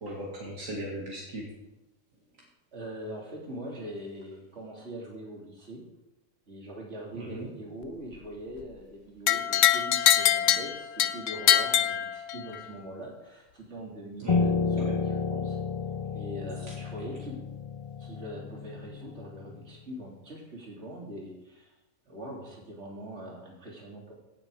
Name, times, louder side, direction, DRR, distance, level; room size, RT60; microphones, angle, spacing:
voice 1, 0.0-1.5 7.1-7.5 14.2-14.4 14.8-15.0, right 1 dB, 80° right, -3 dB, 2.5 m, -38 dB
voice 2, 2.7-5.8 6.5-15.6 16.1-17.4 18.0-21.7 22.1-24.1, right 1 dB, 55° right, -3 dB, 3.5 m, -42 dB
sound 1, 9.3-12.6, left 11 dB, 75° left, 1.0 m, -24 dB
Piano, 14.3-19.6, left 4 dB, 55° left, 0.3 m, -31 dB
17.0 x 7.4 x 5.1 m, 0.96 s
omnidirectional pair, 1.4 m